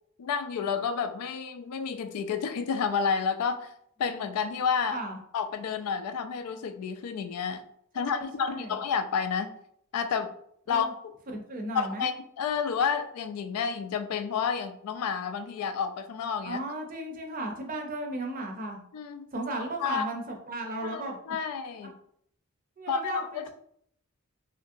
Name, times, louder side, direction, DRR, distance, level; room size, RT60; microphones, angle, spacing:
voice 1, 0.2-3.7 4.0-5.0 5.3-7.6 7.9-9.5 9.9-10.3 10.7-11.1 11.7-16.6 18.9-19.2 19.8-20.0 20.8-21.9 22.9-23.5, left 6 dB, 90° left, 8 dB, 0.3 m, -30 dB
voice 2, 7.9-8.8 10.7-10.9 11.3-12.1 16.4-18.8 19.3-21.2 22.8-23.5, right 2 dB, 40° right, 2 dB, 0.5 m, -35 dB
2.8 x 2.5 x 2.6 m, 0.68 s
head